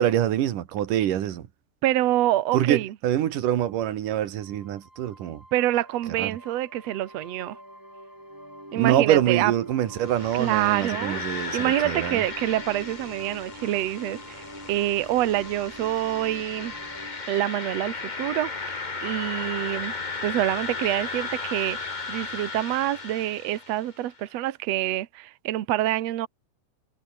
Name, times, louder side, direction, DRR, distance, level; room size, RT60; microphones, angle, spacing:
voice 1, 0.0-1.5 2.5-5.4 6.2-6.4 8.8-12.2, right 11 dB, 85° right, 3.1 m, -25 dB
voice 2, 1.8-2.9 5.5-7.6 8.7-9.5 10.4-16.7 17.3-19.9 20.2-26.3, right 14 dB, 60° right, 2.2 m, -26 dB
sound 1, 4.4-18.8, equal, 5° right, 7.7 m, -45 dB
sound 2, 10.0-24.0, left 4 dB, 85° left, 0.4 m, -35 dB
omnidirectional pair, 3.6 m